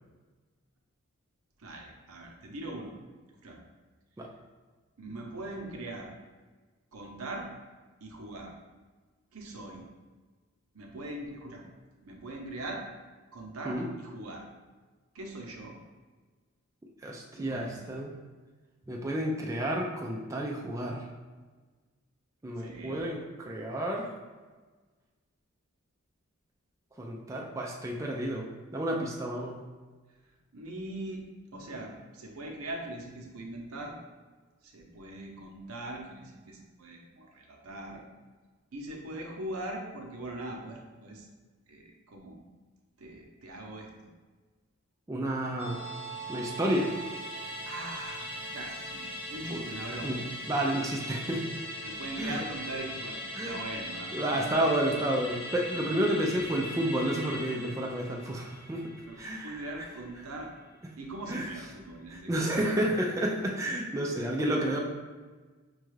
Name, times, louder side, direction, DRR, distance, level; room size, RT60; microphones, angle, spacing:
voice 1, 1.6-2.9 3.4-3.6 5.0-6.1 6.9-7.5 8.0-8.5 9.3-9.9 10.7-11.6 12.0-12.8 13.3-14.4 15.1-15.8 17.4-17.9 22.6-23.0 30.5-33.9 34.6-38.0 38.7-41.3 41.7-42.4 43.0-43.9 47.6-50.2 51.8-54.1 56.3-56.5 59.0-60.5 61.0-63.0, right 1 dB, 90° right, 1 dB, 0.7 m, -41 dB
voice 2, 17.0-18.1 18.9-21.0 22.4-24.1 27.0-28.5 28.7-29.6 45.1-45.8 46.3-46.9 49.5-49.6 50.0-51.5 52.2-52.4 53.3-53.6 54.1-58.9 59.2-59.7 61.3-61.5 62.1-64.8, right 1 dB, 15° right, -1 dB, 0.3 m, -31 dB
Musical instrument, 45.6-60.3 60.6-60.7, equal, 25° left, 0.7 m, -40 dB
5.2 x 2.3 x 3.1 m, 1.4 s
head